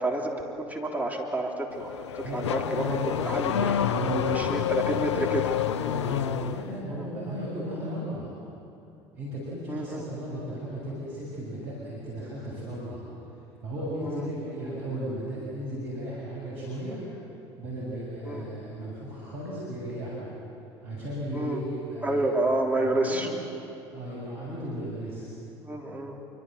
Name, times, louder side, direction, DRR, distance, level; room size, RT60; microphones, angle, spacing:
voice 1, 0.0-5.5 6.9-7.1 9.7-10.0 14.0-14.3 18.3-18.4 21.3-21.6 22.0-23.3 25.6-26.2, right 1 dB, 10° right, 0 dB, 3.5 m, -30 dB
Car / Accelerating revving vroom, 1.7-6.7, left 10 dB, 80° left, 0.6 m, -29 dB
voice 2, 2.7-4.6 5.7-8.3 9.1-13.0 13.6-17.0 17.6-20.3 20.8-22.3 22.7-23.3 23.9-25.4, right 1 dB, 70° right, -6 dB, 7.2 m, -35 dB
26.5 x 26.0 x 8.1 m, 2.7 s
figure-of-eight pair, 65°, 15 cm